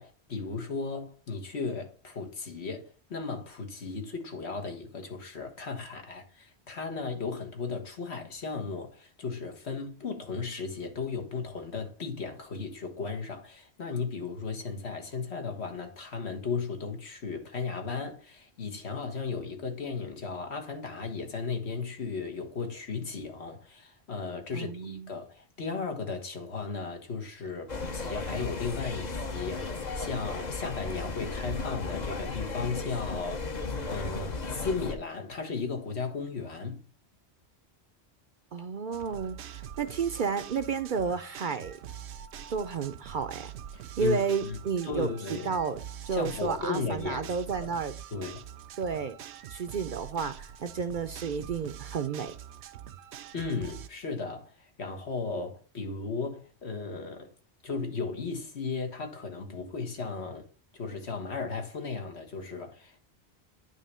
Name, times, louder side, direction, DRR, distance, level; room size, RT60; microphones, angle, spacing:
voice 1, 0.0-33.5 33.9-36.9 43.7-44.6 44.8-45.5 46.1-47.3 47.6-47.7 48.1-48.4 53.3-57.3 57.6-60.5 60.7-63.0, left 4 dB, 75° left, 1.8 m, -35 dB
voice 2, 24.5-25.1 38.5-41.8 42.5-43.5 44.0-45.8 46.1-47.9 48.8-49.1 49.5-52.3, right 5 dB, 55° right, 0.7 m, -31 dB
sound 1, 27.7-35.0, left 3 dB, 45° left, 1.0 m, -35 dB
sound 2, 38.9-53.9, right 9 dB, 80° right, 0.9 m, -45 dB
9.1 x 3.3 x 5.4 m
omnidirectional pair, 1.1 m